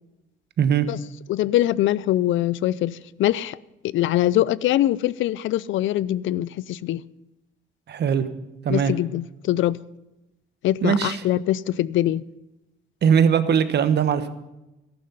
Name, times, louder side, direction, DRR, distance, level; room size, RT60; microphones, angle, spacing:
voice 1, 1.3-3.6 3.8-7.0 8.7-9.8 10.6-12.2, left 14 dB, 75° left, 0.5 m, -23 dB
voice 2, 7.9-8.3 8.6-8.9 10.8-11.2 13.0-14.3, right 7 dB, 60° right, 1.1 m, -20 dB
14.0 x 11.5 x 5.6 m
cardioid pair, 90°, 20 cm